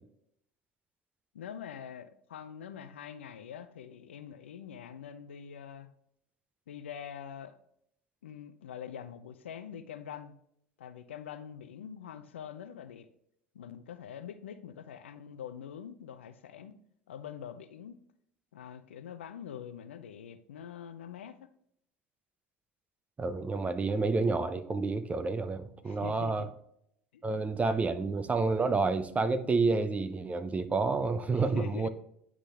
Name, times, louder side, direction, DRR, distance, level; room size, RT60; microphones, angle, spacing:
voice 1, 1.3-5.9 6.7-7.6 8.2-10.3 10.8-13.1 13.5-16.8 17.1-18.0 18.5-21.5 25.8-26.5 27.1-27.2 31.3-31.9, left 8 dB, 85° left, 0.5 m, -44 dB
voice 2, 23.2-26.5 27.2-31.9, right 3 dB, 20° right, 0.7 m, -29 dB
10.0 x 3.7 x 3.4 m
hypercardioid pair, 75°, 6 cm